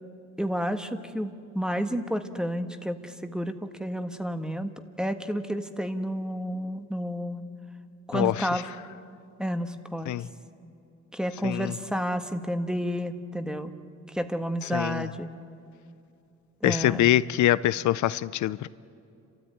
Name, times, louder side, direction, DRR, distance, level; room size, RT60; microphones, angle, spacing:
voice 1, 0.4-4.7 5.0-7.4 8.1-8.6 9.4-10.1 11.1-13.7 14.1-15.3 16.6-17.1, equal, ahead, 1.5 m, -30 dB
voice 2, 8.1-8.6 10.1-10.3 11.4-11.7 14.6-15.1 16.6-18.7, left 13 dB, 70° left, 0.6 m, -24 dB
30.0 x 13.5 x 9.4 m
cardioid pair, 90°, 30 cm